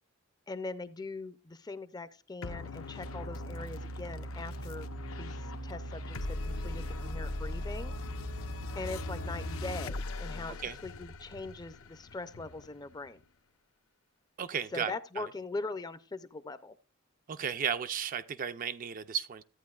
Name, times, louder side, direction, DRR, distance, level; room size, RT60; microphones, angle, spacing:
voice 1, 0.5-4.9 5.2-7.9 8.8-10.6 10.8-13.2 14.7-16.7, left 3 dB, 20° left, 0.4 m, -41 dB
sound 1, 2.4-13.2, left 3 dB, 75° left, 0.7 m, -41 dB
sound 2, 3.0-9.9, right 1 dB, 85° right, 2.1 m, -41 dB
voice 2, 14.4-15.2 17.3-19.4, right 7 dB, 40° right, 0.4 m, -34 dB
13.5 x 9.0 x 2.3 m
head